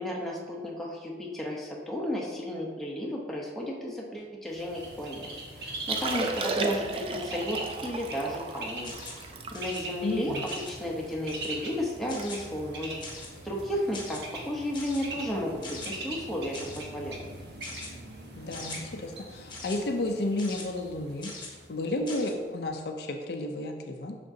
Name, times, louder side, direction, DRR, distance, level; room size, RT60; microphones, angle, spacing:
voice 1, 0.0-5.3 5.6-17.3, equal, ahead, -3 dB, 0.8 m, -33 dB
Bird, 4.5-22.3, right 2 dB, 65° right, 1.1 m, -42 dB
Liquid, 5.8-11.1 11.6-11.7 12.0-12.3 12.5-12.8 13.4-13.6 15.1-15.2, right 3 dB, 30° right, 0.4 m, -34 dB
sound 1, 8.8-9.3 9.5-9.8 10.5-10.8 11.3-11.6 12.1-12.5 13.0-13.4 13.9-14.2 14.7-15.0 15.6-15.9 16.5-16.8 17.6-17.9 18.5-18.8 19.5-19.8 20.4-20.6 21.2-21.5 22.1-22.3, left 3 dB, 25° left, 1.1 m, -42 dB
voice 2, 10.0-10.4 18.4-21.3 21.7-24.2, left 2 dB, 60° left, 4 dB, 0.5 m, -32 dB
6.5 x 6.0 x 2.7 m, 1.5 s
head